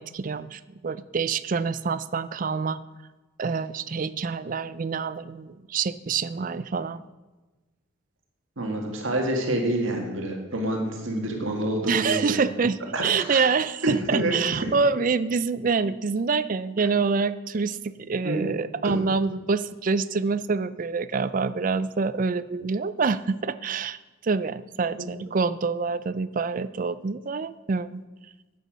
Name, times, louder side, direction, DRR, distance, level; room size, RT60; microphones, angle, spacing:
voice 1, 0.0-2.8 3.4-7.0 11.9-24.0 24.2-28.0, right 4 dB, 40° right, 15 dB, 0.4 m, -26 dB
voice 2, 8.6-12.5 12.9-13.5 13.8-14.7 16.8-16.9 18.2-18.4 25.0-25.1, right 1 dB, 70° right, 1 dB, 2.0 m, -27 dB
11.0 x 8.3 x 6.3 m, 1.2 s
head